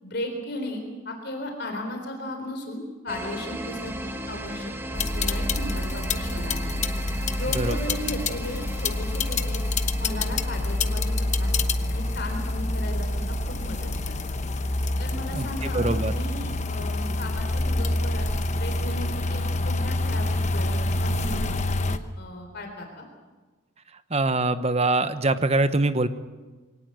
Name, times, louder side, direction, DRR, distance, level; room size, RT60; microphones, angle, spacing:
voice 1, 0.0-6.8 7.3-9.6 10.0-11.5 11.9-14.4 15.0-23.0, left 1 dB, 50° left, 3 dB, 3.9 m, -36 dB
sound 1, 3.1-18.5, right 1 dB, 10° right, 1.5 m, -38 dB
sound 2, 5.0-22.0, left 2 dB, 35° left, 1.0 m, -27 dB
voice 2, 7.5-8.0 15.3-16.1 24.1-26.1, right 2 dB, 30° right, 11 dB, 1.0 m, -24 dB
23.0 x 18.5 x 7.8 m, 1.3 s
head